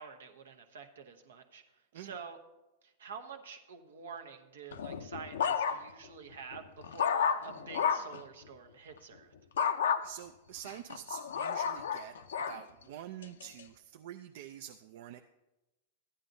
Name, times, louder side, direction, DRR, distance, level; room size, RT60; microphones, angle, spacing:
voice 1, 0.0-1.6 1.9-2.4 2.8-9.3, right 6 dB, 85° right, 7 dB, 1.0 m, -48 dB
sound 1, 4.7-6.1 6.5-8.2 9.6-10.0 10.6-12.6 13.2-13.6, left 7 dB, 85° left, 0.5 m, -31 dB
voice 2, 10.0-12.2 12.5-15.2, right 11 dB, 65° right, 7 dB, 0.4 m, -47 dB
14.0 x 10.0 x 2.6 m, 1.0 s
hypercardioid pair, 120°, 0 cm